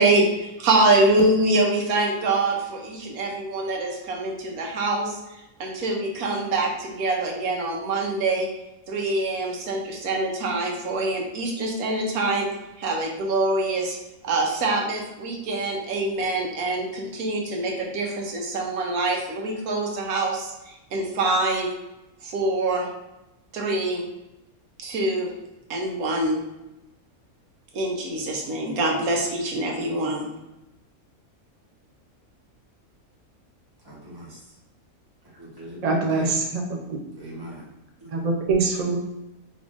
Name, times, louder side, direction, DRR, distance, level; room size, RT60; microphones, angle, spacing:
voice 1, 0.0-5.2 5.6-8.5 8.9-12.5 12.8-14.0 14.2-21.7 22.2-22.9 23.5-24.0 24.8-25.3 25.7-26.4 27.7-30.3, right 2 dB, 90° right, 0 dB, 1.3 m, -24 dB
voice 2, 33.9-34.4 35.4-36.3 37.2-37.6 38.0-38.1, equal, 15° right, -5 dB, 1.1 m, -39 dB
voice 3, 35.8-37.0 38.1-39.0, right 3 dB, 45° right, 1 dB, 0.5 m, -24 dB
5.0 x 3.5 x 2.6 m, 0.95 s
omnidirectional pair, 1.5 m